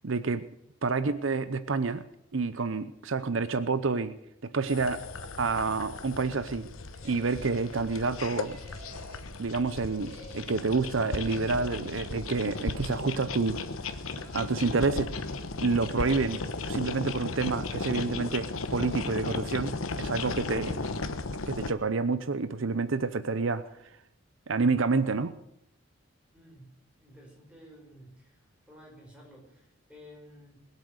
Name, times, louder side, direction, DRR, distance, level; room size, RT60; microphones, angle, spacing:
voice 1, 0.0-0.4 0.8-2.1 2.3-4.1 4.4-5.0 5.4-6.7 7.0-8.6 9.4-13.6 14.2-15.1 15.6-16.4 16.7-20.8 21.5-23.6 24.5-25.4, right 4 dB, 70° right, 13 dB, 0.7 m, -28 dB
sound 1, 4.7-21.7, left 3 dB, 85° left, 1.2 m, -36 dB
sound 2, 6.9-7.8 8.4-9.4 9.8-10.7 11.2-11.9 12.5-13.2, right 1 dB, 35° right, 5.0 m, -51 dB
sound 3, 13.7-20.2, left 1 dB, 45° left, 2.8 m, -55 dB
voice 2, 26.3-26.7 27.0-30.7, equal, 5° right, -2 dB, 4.9 m, -53 dB
21.0 x 8.4 x 6.6 m, 0.78 s
head